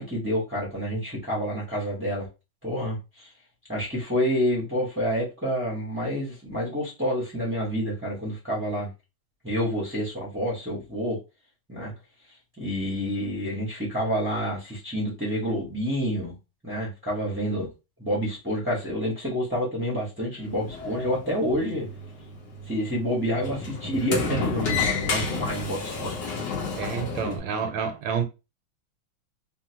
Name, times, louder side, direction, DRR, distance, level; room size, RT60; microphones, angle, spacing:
voice 1, 0.0-2.3 2.6-3.3 3.7-8.9 9.4-11.2 11.7-11.9 12.6-16.3 16.6-17.7 18.0-21.9 22.7-26.5 27.2-27.7, equal, 20° right, 0.3 m, -28 dB
Sliding door, 20.4-27.4, left 4 dB, 55° left, 1.3 m, -31 dB
voice 2, 26.8-28.3, right 6 dB, 75° right, 1.3 m, -29 dB
3.7 x 2.0 x 2.8 m
omnidirectional pair, 2.2 m